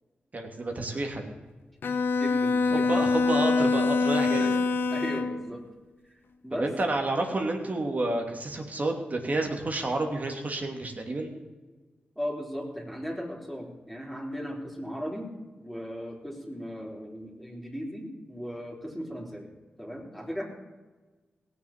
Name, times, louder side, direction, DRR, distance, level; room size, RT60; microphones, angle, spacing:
voice 1, 0.3-1.3 2.7-4.6 6.6-11.3, right 2 dB, 45° right, 3 dB, 2.8 m, -30 dB
Bowed string instrument, 1.8-5.4, left 4 dB, 70° left, 1.0 m, -25 dB
voice 2, 2.1-3.1 4.4-4.5 4.9-5.6 6.4-6.7 12.2-15.3 15.6-19.5 19.8-20.4, equal, 5° left, -2 dB, 4.1 m, -37 dB
17.5 x 6.9 x 7.5 m, 1.3 s
cardioid pair, 50°, 4 cm